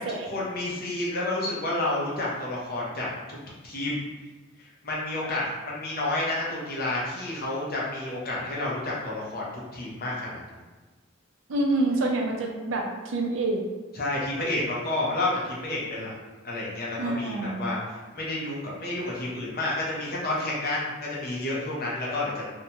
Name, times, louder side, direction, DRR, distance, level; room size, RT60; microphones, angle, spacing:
voice 1, 0.2-3.4 3.6-4.0 4.8-10.6 13.9-16.1 16.4-22.5, left 2 dB, 50° left, -5 dB, 0.7 m, -30 dB
voice 2, 11.5-13.6 17.0-17.6, right 2 dB, 70° right, 1 dB, 0.5 m, -27 dB
2.7 x 2.2 x 2.8 m, 1.2 s
head